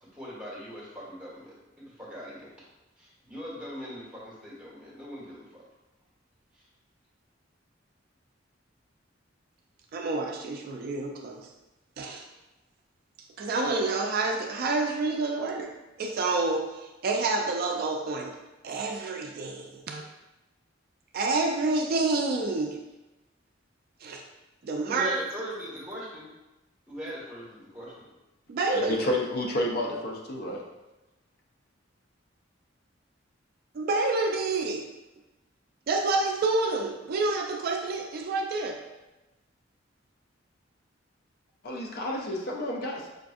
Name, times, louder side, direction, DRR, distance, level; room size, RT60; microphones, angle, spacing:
voice 1, 0.0-2.5 3.0-5.6 6.5-6.6 24.9-26.3 26.9-28.1, equal, 5° right, -7 dB, 1.4 m, -40 dB
voice 2, 9.9-11.5 12.0-12.2 13.4-15.7 16.0-18.3 18.6-20.0 21.1-22.8 24.0-24.2 24.6-25.1 28.5-29.0 33.7-34.8 35.9-38.7, right 3 dB, 50° right, 2 dB, 0.3 m, -28 dB
voice 3, 28.7-30.6 41.6-43.1, left 1 dB, 55° left, -1 dB, 0.5 m, -30 dB
5.0 x 2.5 x 2.4 m, 1.0 s
head